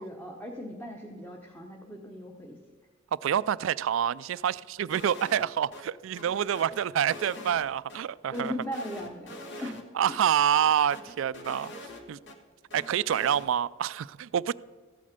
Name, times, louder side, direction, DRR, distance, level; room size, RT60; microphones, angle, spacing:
voice 1, 0.0-2.6 8.3-9.8, equal, 10° left, 0.9 m, -38 dB
voice 2, 3.1-8.5 9.9-12.2 12.7-14.5, right 9 dB, 65° right, 0.3 m, -27 dB
sound 1, 4.9-5.5 5.7-5.8 6.2-8.0 8.3-9.8 10.1-10.2 10.5-12.4 12.7-13.5, left 1 dB, 60° left, 1.4 m, -44 dB
14.0 x 8.6 x 5.2 m
head